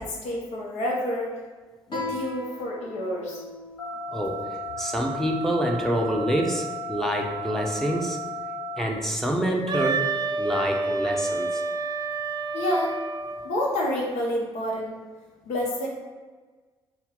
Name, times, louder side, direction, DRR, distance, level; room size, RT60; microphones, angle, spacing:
voice 1, 0.0-1.4 1.9-3.4 12.5-12.9 13.4-14.9 15.5-15.9, left 1 dB, 65° left, -2 dB, 0.9 m, -28 dB
Guitar, 1.9-5.1, left 3 dB, 40° left, 1.3 m, -39 dB
sound 1, 3.8-8.8, equal, 85° left, 1.1 m, -34 dB
voice 2, 4.8-8.2 8.8-10.0 10.4-11.6, equal, 5° left, 1 dB, 0.7 m, -27 dB
Wind instrument woodwind instrument, 9.7-13.5, right 3 dB, 35° right, 0.4 m, -28 dB
4.2 x 2.3 x 3.7 m, 1.4 s
hypercardioid pair, 45°, 13 cm